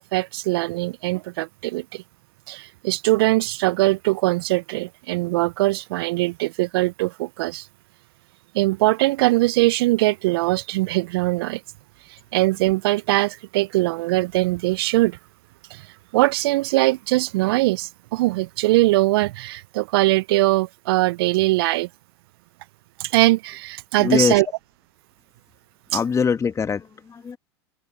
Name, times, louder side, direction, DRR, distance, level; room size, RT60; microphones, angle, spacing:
voice 1, 0.0-2.0 2.5-7.7 8.5-11.6 12.1-15.2 15.7-15.8 16.1-21.9 23.0-24.5, right 19 dB, 65° right, 0.5 m, -21 dB
voice 2, 24.0-24.4 25.9-27.4, left 6 dB, 20° left, 1.5 m, -22 dB
open air
hypercardioid pair, 90°, 14 cm